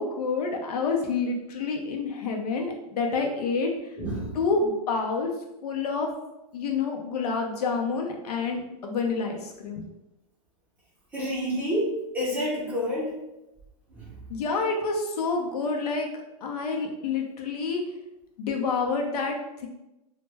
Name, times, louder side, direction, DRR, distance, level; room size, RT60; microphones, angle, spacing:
voice 1, 0.0-4.0 4.3-5.3 5.6-6.1 6.5-9.9 14.3-16.1 16.4-17.8 18.4-19.7, left 4 dB, 75° left, 2 dB, 0.5 m, -28 dB
voice 2, 4.0-4.4 11.1-13.1 13.9-14.1, equal, 10° right, -9 dB, 0.7 m, -28 dB
2.1 x 2.1 x 3.2 m, 0.92 s
supercardioid pair, 165°, 20 cm